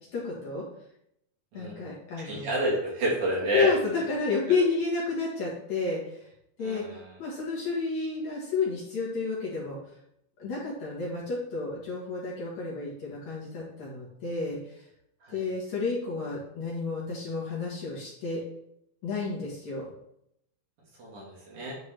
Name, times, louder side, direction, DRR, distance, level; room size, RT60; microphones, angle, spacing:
voice 1, 0.1-0.6 1.5-2.6 3.5-6.3 6.6-6.9 7.2-9.8 10.4-14.9 15.3-18.4 19.0-19.9, left 4 dB, 55° left, -6 dB, 2.4 m, -31 dB
voice 2, 2.2-3.7 4.5-4.6 6.6-7.1 15.2-15.4 21.0-21.7, right 1 dB, 60° right, -5 dB, 2.8 m, -29 dB
9.7 x 3.6 x 3.3 m, 0.77 s
omnidirectional pair, 4.3 m